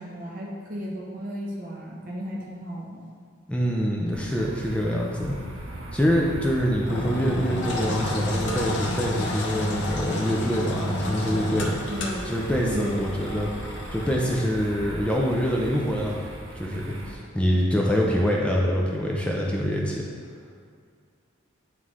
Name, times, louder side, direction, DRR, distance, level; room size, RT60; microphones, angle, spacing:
voice 1, 0.0-3.1 11.9-12.2 12.6-13.2, equal, 40° right, -3 dB, 0.9 m, -34 dB
voice 2, 3.5-5.4 5.9-11.8 12.3-13.5 13.9-16.3 16.6-20.0, equal, 5° left, -2 dB, 0.5 m, -25 dB
sound 1, 4.1-17.1, right 1 dB, 80° right, 0.9 m, -39 dB
Engine, 6.8-14.4, left 1 dB, 60° left, 0.9 m, -31 dB
9.3 x 3.2 x 3.6 m, 2.1 s
head